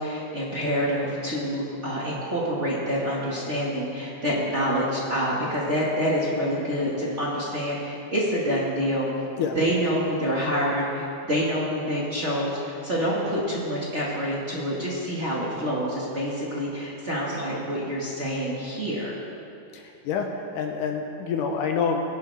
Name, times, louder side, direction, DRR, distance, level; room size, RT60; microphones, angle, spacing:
voice 1, 0.0-9.1 9.5-19.2, equal, 35° right, -6 dB, 1.1 m, -27 dB
voice 2, 19.7-22.0, left 6 dB, 75° left, 2 dB, 2.2 m, -27 dB
21.0 x 10.5 x 3.5 m, 2.6 s
omnidirectional pair, 4.2 m